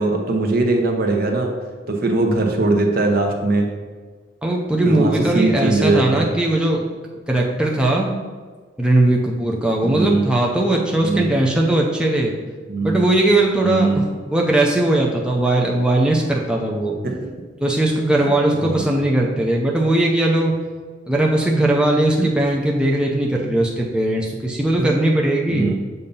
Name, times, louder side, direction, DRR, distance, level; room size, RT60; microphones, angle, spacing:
voice 1, 0.0-1.5 1.9-3.7 4.8-6.3 9.8-10.2 11.0-11.3 12.7-13.0 13.6-14.0 17.0-17.1 18.5-18.8 24.8-24.9 25.5-25.7, right 2 dB, 55° right, 2 dB, 0.8 m, -20 dB
voice 2, 4.4-6.8 7.3-8.1 8.8-12.4 12.8-14.1 14.3-17.0 17.6-20.5 21.1-25.7, right 1 dB, 5° right, -2 dB, 0.5 m, -19 dB
6.9 x 2.8 x 5.3 m, 1.5 s
head